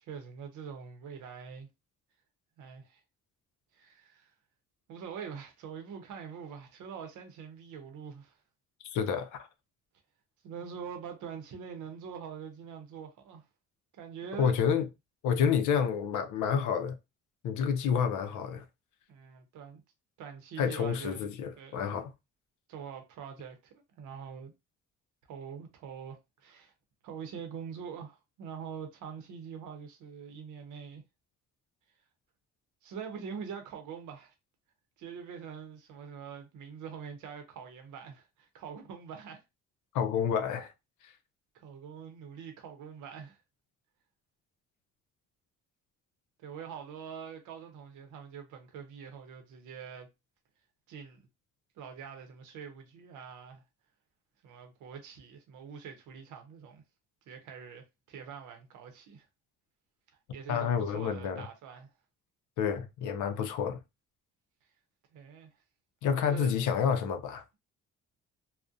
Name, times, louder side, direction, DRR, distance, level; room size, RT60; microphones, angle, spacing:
voice 1, 0.1-1.7 2.6-3.0 3.7-4.3 4.9-8.4 10.4-13.4 13.9-14.6 15.4-15.6 19.1-19.8 20.2-21.3 21.6-21.9 22.7-24.5 25.3-26.7 27.0-31.0 32.8-34.3 35.0-39.4 41.5-43.4 46.4-50.1 50.9-51.3 51.8-53.6 54.4-56.8 57.3-59.3 60.3-61.9 65.1-65.5 66.0-66.6, right 7 dB, 80° right, 0.7 m, -44 dB
voice 2, 8.8-9.5 14.4-14.9 15.2-17.0 17.4-18.6 20.6-22.1 39.9-40.7 41.0-41.1 60.5-61.5 62.6-63.8 66.0-67.4, left 7 dB, 80° left, 0.5 m, -29 dB
2.4 x 2.1 x 2.5 m
cardioid pair, 90°, 30 cm